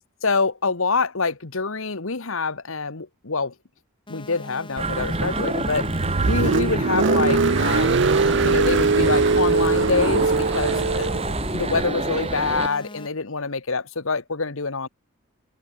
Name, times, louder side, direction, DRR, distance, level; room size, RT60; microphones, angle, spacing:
voice 1, 0.2-3.5 4.1-5.9 6.3-8.0 8.4-14.9, left 4 dB, 70° left, 1.4 m, -26 dB
sound 1, 4.1-13.1, left 1 dB, 20° left, 2.2 m, -41 dB
sound 2, 4.8-12.7, right 2 dB, 30° right, 3.1 m, -27 dB
Car, 5.8-11.3, right 4 dB, 55° right, 0.6 m, -21 dB
open air
head